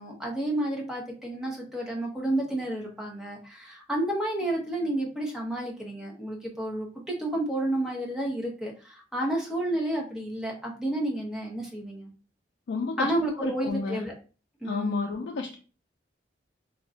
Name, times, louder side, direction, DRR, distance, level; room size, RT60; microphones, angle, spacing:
voice 1, 0.0-12.1 13.0-14.1 14.6-15.1, right 1 dB, 5° right, -1 dB, 0.6 m, -31 dB
voice 2, 12.7-13.1 13.4-14.0 14.6-15.5, left 4 dB, 65° left, 1 dB, 0.4 m, -31 dB
2.3 x 2.2 x 3.8 m, 0.36 s
head